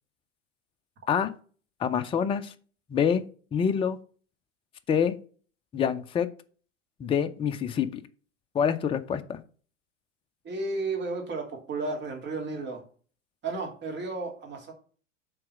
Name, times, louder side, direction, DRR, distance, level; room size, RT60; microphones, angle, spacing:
voice 1, 1.8-2.5 2.9-3.2 3.5-4.0 4.9-5.1 5.7-6.3 7.0-8.0 8.5-9.4, left 7 dB, 15° left, 10 dB, 0.5 m, -26 dB
voice 2, 10.4-12.8 13.4-14.7, right 3 dB, 30° right, 2 dB, 2.7 m, -33 dB
7.6 x 3.9 x 6.1 m, 0.41 s
figure-of-eight pair, 90°, 38 cm